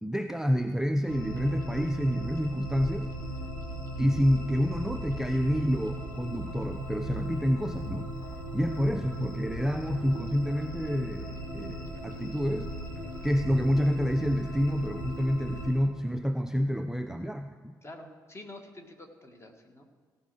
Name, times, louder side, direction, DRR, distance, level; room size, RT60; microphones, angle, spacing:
voice 1, 0.0-3.1 4.0-8.1 8.5-12.7 13.2-17.7, equal, 5° right, 7 dB, 0.5 m, -28 dB
sound 1, 1.1-15.7, equal, 90° left, 2.0 m, -38 dB
voice 2, 17.8-19.8, left 1 dB, 25° left, 5 dB, 1.7 m, -47 dB
17.0 x 5.7 x 6.2 m, 1.5 s
figure-of-eight pair, 40°, 10 cm